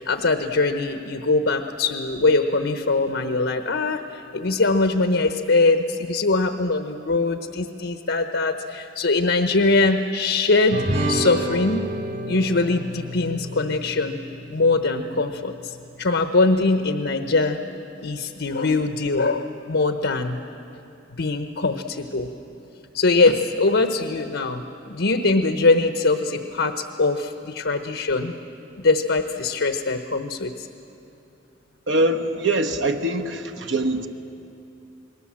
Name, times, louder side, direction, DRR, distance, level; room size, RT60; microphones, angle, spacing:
voice 1, 0.0-11.9 12.3-14.2 14.5-17.6 18.0-20.4 21.1-22.3 22.9-28.3 28.8-30.7, left 3 dB, 85° left, 7 dB, 1.0 m, -22 dB
sound 1, 10.7-15.4, right 1 dB, 50° right, 2.6 m, -30 dB
voice 2, 31.9-34.1, right 1 dB, 75° right, 5 dB, 1.1 m, -23 dB
28.5 x 21.0 x 7.4 m, 2.8 s
head